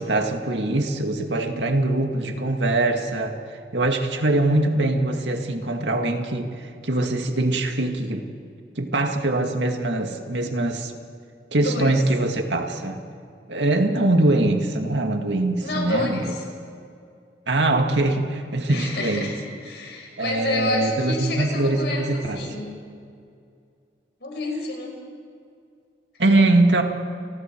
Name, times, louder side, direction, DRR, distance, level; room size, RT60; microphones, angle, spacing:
voice 1, 0.0-3.4 3.7-8.2 8.8-10.9 11.5-13.0 13.5-16.2 17.5-19.3 20.2-22.4 26.2-26.8, right 2 dB, 85° right, 4 dB, 2.1 m, -22 dB
voice 2, 11.6-12.0 15.6-16.4 18.7-22.8 24.2-25.0, left 2 dB, 70° left, 1 dB, 5.3 m, -29 dB
29.5 x 20.0 x 4.6 m, 2.3 s
head